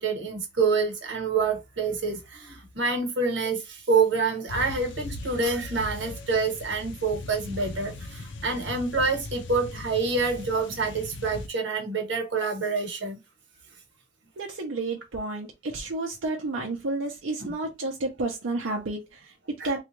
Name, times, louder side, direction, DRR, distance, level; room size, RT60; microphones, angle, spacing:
voice 1, 0.0-13.2 17.4-17.5 19.6-19.7, right 4 dB, 65° right, 1.1 m, -27 dB
sound 1, 4.5-11.5, left 2 dB, 70° left, 0.5 m, -39 dB
voice 2, 14.4-19.8, right 2 dB, 90° right, 0.6 m, -31 dB
3.3 x 2.4 x 3.0 m
head